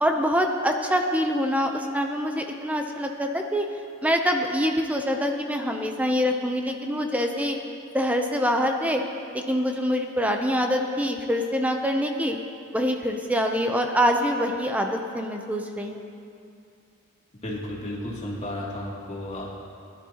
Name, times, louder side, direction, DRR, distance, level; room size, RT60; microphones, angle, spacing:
voice 1, 0.0-3.7 4.0-7.6 7.9-9.0 9.3-12.4 12.7-16.0, equal, 5° right, 4 dB, 0.5 m, -25 dB
voice 2, 17.4-19.6, left 1 dB, 30° left, -7 dB, 2.4 m, -33 dB
17.5 x 11.0 x 2.9 m, 2.5 s
head